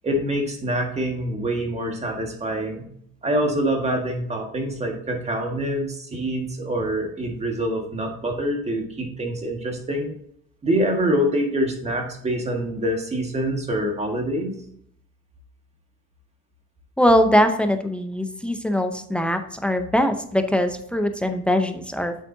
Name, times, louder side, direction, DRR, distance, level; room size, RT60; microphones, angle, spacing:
voice 1, 0.0-2.9 3.2-10.1 10.6-14.6, right 1 dB, 20° right, 2 dB, 1.7 m, -25 dB
voice 2, 17.0-22.2, equal, 5° left, 7 dB, 0.6 m, -21 dB
8.3 x 7.2 x 2.7 m, 0.68 s
cardioid pair, 150°, 30 cm